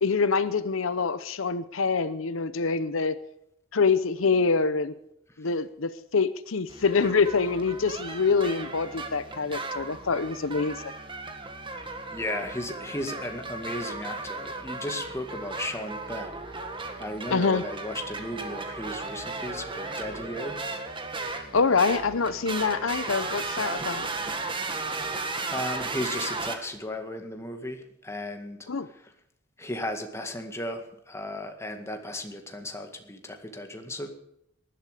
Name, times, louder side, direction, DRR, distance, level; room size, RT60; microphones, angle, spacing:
voice 1, 0.0-3.2 3.7-4.9 5.4-10.9 17.3-17.6 21.5-24.1 28.7-28.9, left 4 dB, 85° left, 14 dB, 0.8 m, -25 dB
sound 1, 6.7-26.6, right 3 dB, 25° right, 1.8 m, -35 dB
voice 2, 12.1-16.6 17.0-20.6 25.5-28.7 28.9-29.1 29.6-34.1, left 1 dB, 15° left, 5 dB, 1.9 m, -35 dB
19.5 x 11.5 x 5.0 m, 0.77 s
head